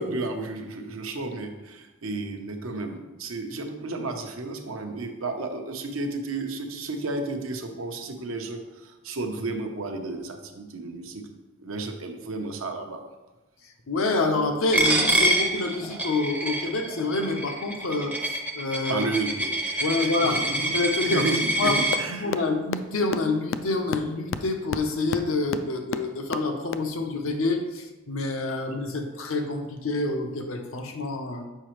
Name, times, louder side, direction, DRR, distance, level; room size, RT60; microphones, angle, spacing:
voice 1, 0.0-11.2 11.6-13.0 18.9-20.8 21.0-22.4, right 2 dB, 85° right, 5 dB, 0.8 m, -32 dB
voice 2, 13.9-19.0 19.8-21.3 21.6-21.8 22.1-31.4, left 3 dB, 90° left, 4 dB, 0.8 m, -27 dB
Coin (dropping), 14.7-22.0, right 1 dB, 10° right, 0.5 m, -26 dB
sound 1, 21.9-22.0 22.3-22.4 22.7-22.8 23.1-23.2 23.5-23.6 23.9-24.0 24.3-24.4 24.7-24.8 25.1-25.2 25.5-25.6 25.9-26.0 26.3-26.4 26.7-26.8, left 7 dB, 65° left, 0.3 m, -27 dB
6.8 x 5.0 x 3.1 m, 1.1 s
head